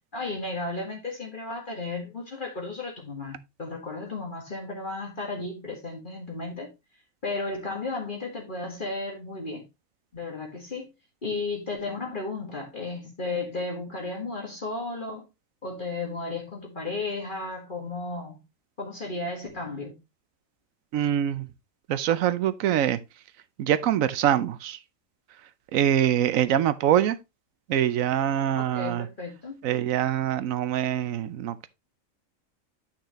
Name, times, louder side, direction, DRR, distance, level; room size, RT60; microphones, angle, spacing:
voice 1, 0.1-6.7 7.2-9.6 10.1-10.9 11.2-15.2 15.6-18.4 18.8-19.9 28.6-29.6, left 3 dB, 40° left, 2.0 m, -34 dB
voice 2, 20.9-21.5 21.9-23.0 23.6-24.8 25.7-27.2 27.7-29.1 29.6-31.7, right 10 dB, 80° right, 1.1 m, -24 dB
9.2 x 5.7 x 3.0 m
omnidirectional pair, 1.4 m